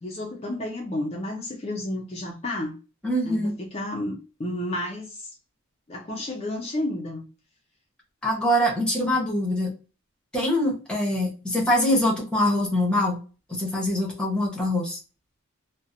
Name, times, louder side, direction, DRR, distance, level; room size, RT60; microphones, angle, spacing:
voice 1, 0.0-2.7 3.2-5.3 5.9-7.3 9.0-9.1, left 1 dB, 30° left, 0.4 m, -31 dB
voice 2, 3.0-3.5 8.2-9.7 10.3-13.2 13.5-15.0, left 1 dB, 5° left, 0.8 m, -24 dB
2.7 x 2.1 x 2.5 m
head